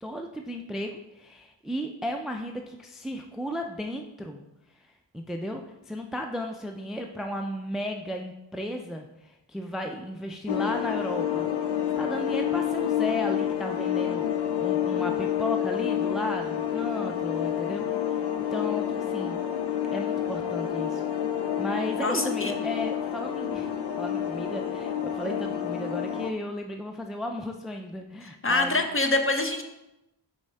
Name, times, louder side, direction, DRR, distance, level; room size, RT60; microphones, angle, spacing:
voice 1, 0.0-4.5 4.8-11.5 12.0-14.2 14.6-19.4 19.9-21.0 21.6-23.7 24.0-28.9, equal, ahead, 3 dB, 0.4 m, -35 dB
sound 1, 10.5-26.3, left 10 dB, 70° left, 0.6 m, -29 dB
voice 2, 22.0-22.5 28.2-29.6, left 2 dB, 30° left, 5 dB, 0.8 m, -25 dB
5.3 x 3.6 x 5.3 m, 0.93 s
cardioid pair, 45°, 43 cm